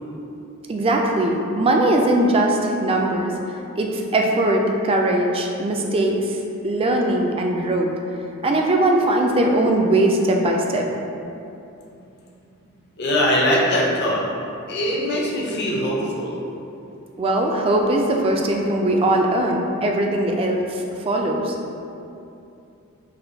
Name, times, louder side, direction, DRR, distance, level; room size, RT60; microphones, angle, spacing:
voice 1, 0.7-3.3 3.8-6.4 6.6-7.9 8.4-10.9 17.2-21.5, right 1 dB, 25° right, 1 dB, 0.3 m, -20 dB
voice 2, 13.0-14.2 14.7-16.4, equal, 50° left, -3 dB, 0.7 m, -21 dB
6.0 x 2.2 x 2.7 m, 2.8 s
head